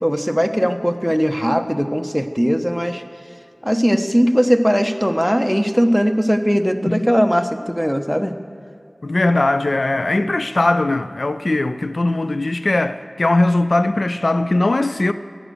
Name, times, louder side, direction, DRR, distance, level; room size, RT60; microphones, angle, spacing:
voice 1, 0.0-3.0 3.6-8.3, equal, ahead, 1.0 m, -19 dB
voice 2, 9.0-15.1, left 2 dB, 85° left, 0.4 m, -19 dB
15.5 x 11.0 x 6.9 m
wide cardioid pair, 45°, 0 cm